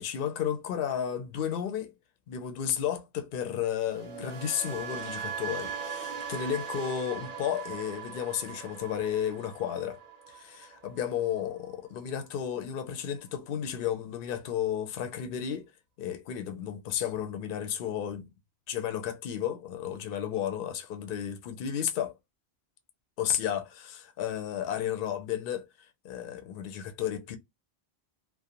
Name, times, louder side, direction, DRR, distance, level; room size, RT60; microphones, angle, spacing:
voice 1, 0.0-1.9 2.3-10.0 10.3-15.7 16.0-18.3 18.7-22.2 23.2-25.7 26.0-27.4, left 9 dB, 65° left, 0.7 m, -33 dB
sound 1, 3.8-11.9 12.2-12.5, right 6 dB, 55° right, 0.7 m, -40 dB
2.4 x 2.1 x 2.7 m
omnidirectional pair, 1.1 m